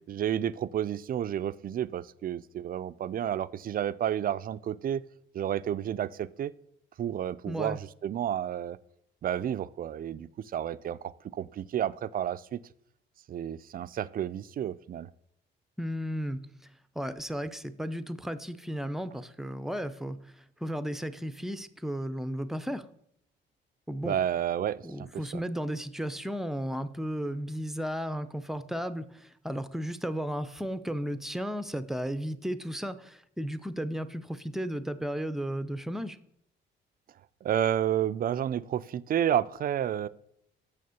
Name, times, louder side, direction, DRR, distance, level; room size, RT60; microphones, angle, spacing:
voice 1, 0.1-5.0 5.3-6.5 7.0-8.8 9.2-12.6 13.3-15.1 24.0-25.4 37.4-40.1, right 10 dB, 45° right, 16 dB, 0.4 m, -31 dB
voice 2, 7.5-7.8 15.8-16.4 17.0-22.9 23.9-24.2 24.8-36.2, equal, ahead, 12 dB, 0.6 m, -34 dB
6.5 x 6.4 x 6.9 m, 0.73 s
cardioid pair, 90°, 20 cm